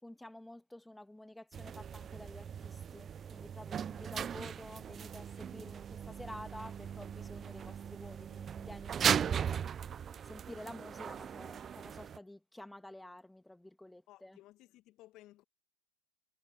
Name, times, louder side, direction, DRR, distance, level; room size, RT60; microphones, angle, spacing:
voice 1, 0.0-9.6 10.3-14.4, left 1 dB, 5° left, 2.8 m, -50 dB
sound 1, 1.5-12.2, right 8 dB, 25° right, 0.6 m, -38 dB
voice 2, 14.1-15.4, left 16 dB, 45° left, 2.4 m, -58 dB
hypercardioid pair, 95°, 0 cm